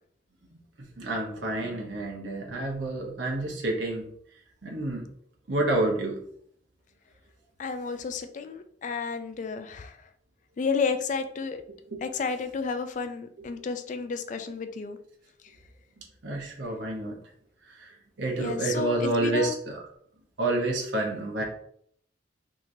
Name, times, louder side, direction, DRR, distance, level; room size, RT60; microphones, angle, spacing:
voice 1, 1.0-4.1 4.6-5.0 5.5-6.2 11.9-12.0 16.2-17.1 18.2-19.8 20.4-21.4, right 2 dB, 85° right, 0 dB, 0.9 m, -29 dB
voice 2, 7.6-10.0 10.6-11.6 12.0-15.0 18.4-19.6, left 5 dB, 45° left, 9 dB, 0.3 m, -31 dB
3.6 x 3.0 x 2.6 m, 0.65 s
head